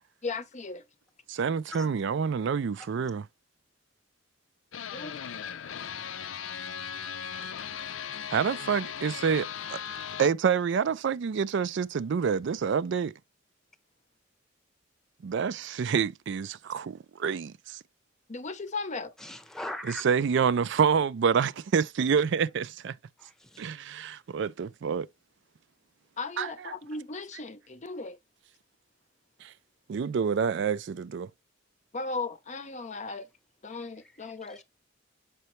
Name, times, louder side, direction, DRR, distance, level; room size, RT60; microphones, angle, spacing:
voice 1, 0.2-0.8 4.9-5.2 18.3-19.1 26.2-28.2 31.9-33.3 33.6-34.6, left 3 dB, 40° left, 0.7 m, -36 dB
voice 2, 1.3-3.3 8.3-9.8 10.2-13.1 15.2-17.8 19.8-22.9 23.6-25.1 26.4-26.7 29.4-29.5 29.9-31.3, right 6 dB, 65° right, 0.4 m, -27 dB
sound 1, 4.7-10.3, left 8 dB, 90° left, 0.6 m, -38 dB
voice 3, 19.2-20.1 23.2-23.8 34.5-34.6, left 1 dB, 5° left, 0.9 m, -40 dB
6.7 x 5.3 x 3.1 m
head